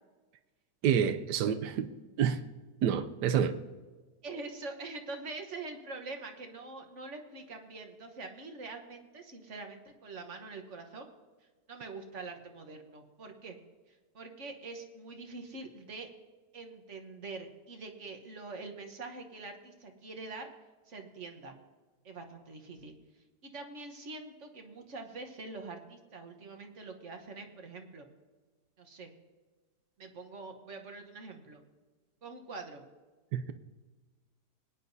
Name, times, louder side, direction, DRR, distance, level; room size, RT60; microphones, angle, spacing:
voice 1, 0.8-1.9 2.2-2.4 2.8-3.6 33.3-33.5, right 8 dB, 90° right, 10 dB, 1.2 m, -28 dB
voice 2, 4.2-11.1 11.7-13.6 14.1-16.1 16.5-20.5 20.9-21.5 22.0-22.9 23.4-28.0 28.8-29.1 30.0-31.6 32.2-32.8, right 3 dB, 50° right, 5 dB, 1.4 m, -44 dB
21.0 x 9.9 x 2.7 m, 1.3 s
omnidirectional pair, 1.8 m